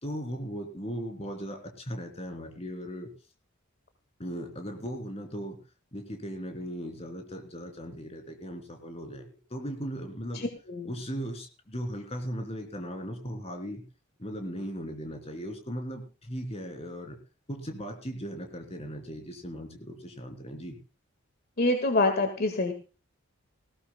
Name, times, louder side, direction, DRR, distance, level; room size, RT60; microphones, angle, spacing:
voice 1, 0.0-3.1 4.2-5.6 5.9-10.5 10.9-13.8 14.2-17.2 17.5-20.8, equal, 30° left, 5 dB, 3.1 m, -38 dB
voice 2, 10.3-10.9 21.6-22.7, left 2 dB, 50° left, 6 dB, 1.7 m, -26 dB
20.0 x 17.0 x 2.2 m, 0.35 s
head